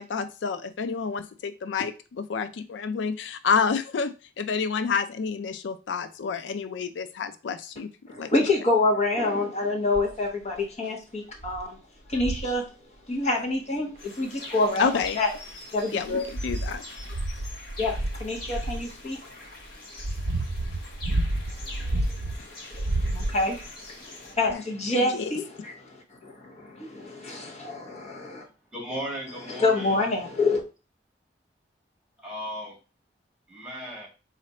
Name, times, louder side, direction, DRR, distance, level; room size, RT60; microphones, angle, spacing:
voice 1, 0.0-7.9 8.2-8.5 14.8-15.2 15.9-16.8 24.5-24.6 24.9-25.3, left 5 dB, 90° left, 0.4 m, -29 dB
voice 2, 8.1-11.8 12.1-12.6 13.1-15.3 15.7-16.2 17.8-19.2 21.8-22.1 22.4-28.4 29.6-30.6, left 2 dB, 40° left, 1.1 m, -27 dB
sound 1, 9.9-10.2 10.8-10.9 11.4-11.6 12.1-12.6 14.0-14.1 14.8-15.5 16.0-18.9 19.6-22.4 22.7-23.7 24.5-24.6, right 1 dB, 80° right, 0.6 m, -30 dB
sound 2, 14.0-24.3, left 2 dB, 60° left, 1.3 m, -44 dB
voice 3, 28.7-30.0 32.2-32.7 33.5-34.1, equal, 5° right, 1.6 m, -36 dB
4.1 x 2.5 x 4.2 m
head